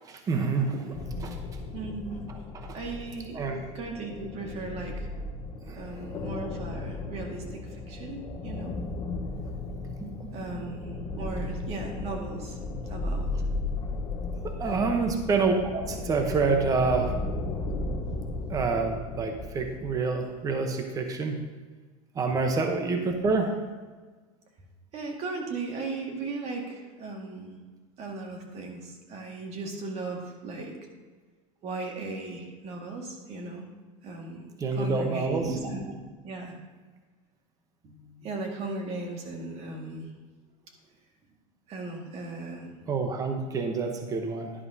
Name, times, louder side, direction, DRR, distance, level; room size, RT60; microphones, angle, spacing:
voice 1, 0.0-1.4 2.5-2.8 3.3-3.6 5.7-5.8 10.0-10.6 14.4-17.1 18.5-21.4 22.1-23.5 34.6-35.5 42.9-44.5, right 4 dB, 20° right, 4 dB, 0.9 m, -27 dB
sound 1, 0.9-19.9, left 2 dB, 25° left, 1.1 m, -35 dB
voice 2, 1.7-2.3 2.7-3.4 3.7-5.1 5.7-8.7 10.3-12.6 12.9-13.3 14.6-14.9 24.9-27.6 28.0-30.9 31.6-33.7 34.0-34.5 34.7-35.9 36.2-36.6 37.8-40.1 41.7-42.9, right 3 dB, 35° right, 1 dB, 1.9 m, -37 dB
11.0 x 10.5 x 2.8 m, 1.4 s
supercardioid pair, 140°, 17 cm